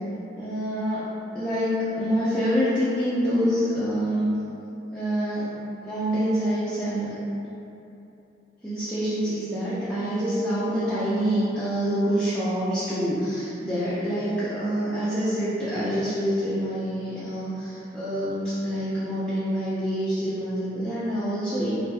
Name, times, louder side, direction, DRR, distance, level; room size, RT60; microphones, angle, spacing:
voice 1, 0.4-1.1 1.3-4.3 4.9-5.5 5.8-7.2 8.6-21.7, equal, 5° left, -14 dB, 0.3 m, -26 dB
2.6 x 2.1 x 2.3 m, 2.8 s
head